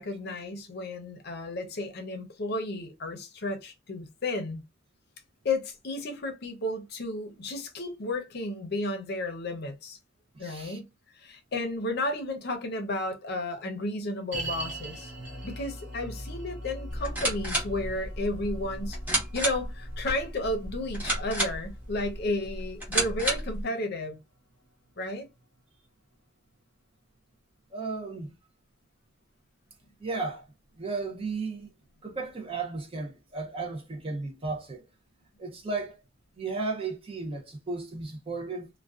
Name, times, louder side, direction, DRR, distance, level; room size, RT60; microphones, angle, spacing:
voice 1, 0.0-4.6 5.4-10.0 10.4-10.9 11.1-15.1 15.4-19.0 19.3-24.2 25.0-25.3, left 2 dB, 55° left, 0.6 m, -33 dB
voice 2, 10.3-10.8 27.7-28.3 30.0-30.4 30.8-31.7 32.0-34.8 35.4-36.0 36.4-38.7, right 3 dB, 30° right, 0.5 m, -34 dB
sound 1, 14.3-25.6 25.9-26.0 26.6-26.7, right 1 dB, 60° right, 0.8 m, -42 dB
sound 2, 16.9-23.6, right 1 dB, 10° right, 0.8 m, -32 dB
2.4 x 2.2 x 2.3 m
head